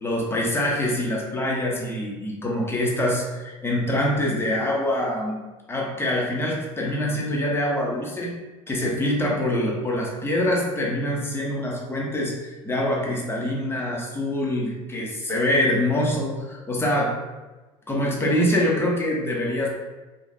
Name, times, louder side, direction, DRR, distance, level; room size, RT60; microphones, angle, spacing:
voice 1, 0.0-5.4 5.7-8.3 8.7-17.1 17.9-19.7, left 1 dB, 15° left, -3 dB, 0.8 m, -25 dB
3.1 x 2.1 x 2.7 m, 1.2 s
hypercardioid pair, 80°, 16 cm